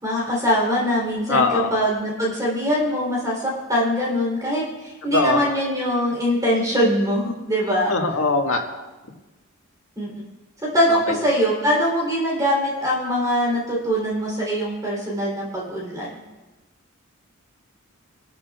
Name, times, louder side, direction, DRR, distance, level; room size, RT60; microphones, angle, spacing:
voice 1, 0.0-7.9 10.0-10.1 10.6-16.1, equal, 15° right, -5 dB, 3.5 m, -22 dB
voice 2, 1.3-1.7 5.1-5.4 7.9-8.6 10.9-11.2, left 3 dB, 70° left, 0 dB, 1.8 m, -21 dB
25.5 x 12.5 x 2.4 m, 1.1 s
head